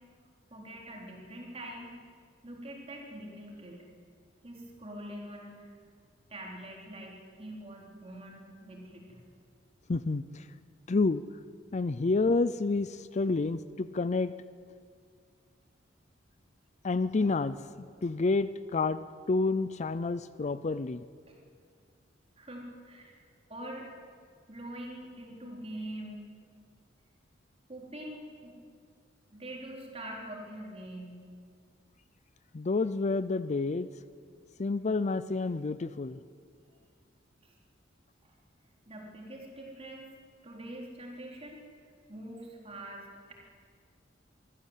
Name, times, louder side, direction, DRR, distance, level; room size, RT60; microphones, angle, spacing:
voice 1, 0.5-1.9 2.4-3.8 4.4-5.7 6.3-9.2 21.3-21.4 22.4-23.2 23.5-23.9 24.5-26.2 27.7-28.5 29.3-31.2 37.4-37.5 38.9-40.1 40.4-41.6 42.1-43.3, right 1 dB, 30° right, -1 dB, 4.1 m, -44 dB
voice 2, 9.9-10.5 10.9-11.2 11.7-14.3 16.8-21.0 32.5-33.9 34.6-36.2, left 3 dB, 40° left, 14 dB, 0.5 m, -29 dB
23.5 x 15.0 x 8.4 m, 2.1 s
head